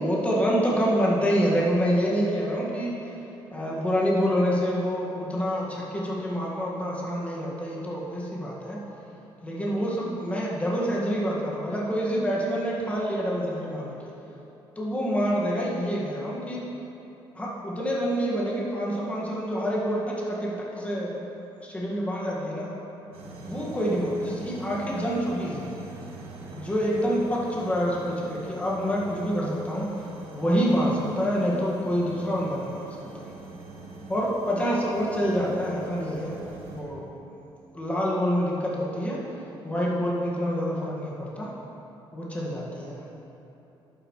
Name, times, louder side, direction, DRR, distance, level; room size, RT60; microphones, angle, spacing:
voice 1, 0.0-2.9 3.5-8.8 9.4-14.1 14.8-16.6 17.4-21.2 21.6-22.7 23.4-25.7 26.5-32.9 34.1-37.1 37.7-39.2 39.6-41.5 42.1-43.0, equal, 15° left, -5 dB, 1.8 m, -27 dB
sound 1, 23.1-36.8, right 2 dB, 90° right, 1.7 m, -43 dB
11.0 x 9.0 x 3.2 m, 2.9 s
cardioid pair, 110°, 10 cm